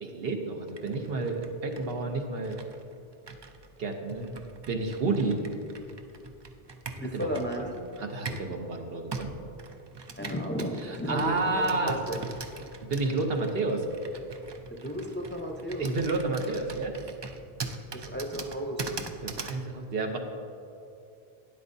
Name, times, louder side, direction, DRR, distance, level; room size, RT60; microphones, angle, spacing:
voice 1, 0.0-2.6 3.8-4.3 4.7-5.4 7.1-9.3 10.8-12.0 12.8-13.9 15.8-16.9 19.2-20.2, right 3 dB, 70° right, 3 dB, 1.0 m, -30 dB
Computer keyboard, 0.7-8.5 9.1-19.6, right 4 dB, 40° right, 0.4 m, -42 dB
voice 2, 7.0-7.6 10.2-12.2 14.7-15.9 17.9-19.1, equal, 10° left, 1 dB, 0.7 m, -34 dB
12.0 x 10.0 x 2.7 m, 2.7 s
omnidirectional pair, 1.0 m